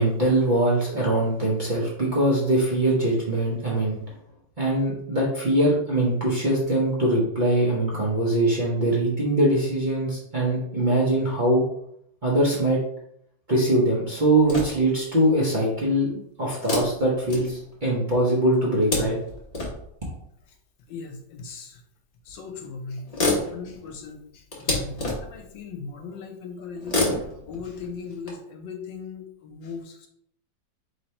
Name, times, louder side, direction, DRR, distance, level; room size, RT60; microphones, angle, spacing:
voice 1, 0.0-4.0 4.6-11.6 12.2-12.8 13.5-19.2, right 1 dB, 40° right, -6 dB, 0.7 m, -22 dB
sound 1, 14.3-15.0 16.6-17.9 18.5-19.9 21.1-21.2 22.3-22.4 22.6-22.7 23.0-25.5 26.8-28.3, left 2 dB, 30° left, 0.8 m, -29 dB
voice 2, 20.9-21.8 22.2-30.1, left 5 dB, 85° left, 4 dB, 1.4 m, -39 dB
3.3 x 3.1 x 4.2 m, 0.72 s
omnidirectional pair, 1.9 m